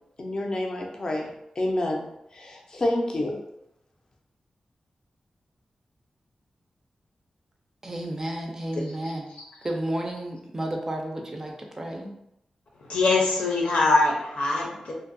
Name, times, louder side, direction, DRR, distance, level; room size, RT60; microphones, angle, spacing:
voice 1, 0.2-1.3 1.6-2.1 2.3-3.4, left 1 dB, 35° left, 0.4 m, -28 dB
voice 2, 7.8-9.3 9.6-12.1, right 1 dB, 25° right, 0.4 m, -32 dB
voice 3, 12.8-14.9, left 3 dB, 80° left, 0.7 m, -23 dB
2.6 x 2.2 x 2.5 m
wide cardioid pair, 145°, 2 cm